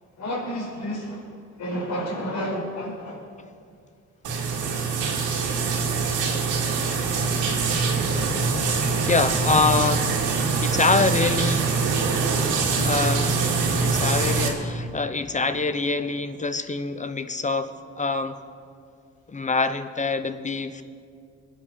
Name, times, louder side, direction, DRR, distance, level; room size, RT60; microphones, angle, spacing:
voice 1, 0.2-1.2 1.6-3.2, equal, 65° left, -3 dB, 5.1 m, -30 dB
sound 1, 4.2-14.5, right 4 dB, 90° right, 2.4 m, -24 dB
voice 2, 9.0-10.2 10.6-11.7 12.8-13.4 13.8-18.3 19.3-20.8, left 4 dB, 25° left, 11 dB, 0.9 m, -25 dB
24.0 x 8.7 x 5.6 m, 2.3 s
cardioid pair, 90°, 30 cm